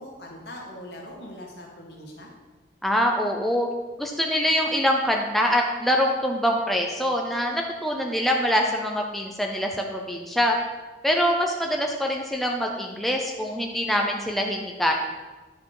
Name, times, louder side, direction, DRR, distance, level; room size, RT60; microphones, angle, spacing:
voice 1, 0.0-2.3, left 1 dB, 65° left, -1 dB, 1.8 m, -41 dB
voice 2, 2.8-3.7 4.0-10.6 11.0-14.9, equal, ahead, 1 dB, 0.5 m, -24 dB
10.0 x 4.8 x 4.8 m, 1.3 s
head